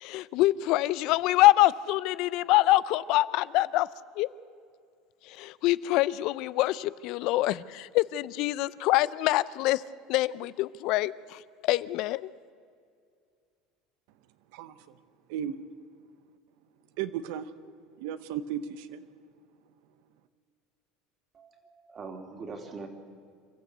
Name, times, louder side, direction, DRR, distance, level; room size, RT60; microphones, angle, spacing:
voice 1, 0.0-3.9 4.2-4.3 5.4-9.8 10.1-12.3, left 17 dB, 60° left, 0.5 m, -25 dB
voice 2, 14.5-15.0 15.3-15.6 17.0-17.5 18.0-19.0, right 9 dB, 75° right, 0.9 m, -35 dB
voice 3, 21.3-22.9, right 4 dB, 25° right, 2.8 m, -42 dB
27.5 x 13.5 x 8.1 m
cardioid pair, 145°, 0 cm